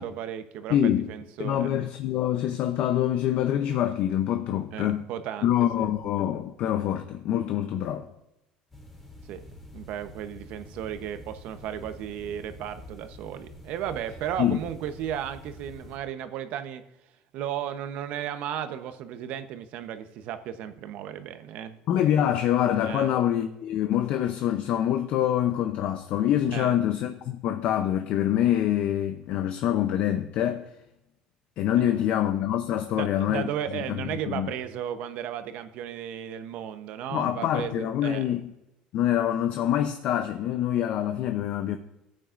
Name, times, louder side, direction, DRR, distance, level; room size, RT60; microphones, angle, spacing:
voice 1, 0.0-1.8 4.7-5.5 5.8-5.9 9.3-9.4 9.7-16.8 17.3-21.8 22.8-23.1 26.5-26.8 31.8-31.9 32.8-38.3, right 10 dB, 65° right, 0.9 m, -35 dB
voice 2, 0.7-1.1 1.4-5.0 5.4-8.1 14.4-14.6 21.9-30.7 31.6-33.5 33.9-34.0 34.3-34.5 37.1-38.5 38.9-41.8, left 11 dB, 60° left, 0.6 m, -25 dB
sound 1, 8.7-16.0, left 1 dB, 10° left, 2.7 m, -47 dB
15.0 x 8.7 x 2.5 m
cardioid pair, 135°, 2 cm